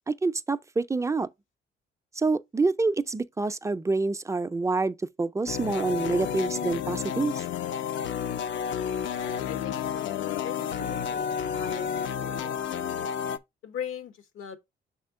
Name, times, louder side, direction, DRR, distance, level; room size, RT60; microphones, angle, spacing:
voice 1, 0.1-1.3 2.2-7.4, right 3 dB, 15° right, 0.4 m, -27 dB
sound 1, 5.5-13.4, left 8 dB, 70° left, 0.5 m, -31 dB
voice 2, 9.5-12.7 13.6-14.6, left 8 dB, 85° left, 1.1 m, -40 dB
6.1 x 4.3 x 3.6 m
cardioid pair, 90°, 20 cm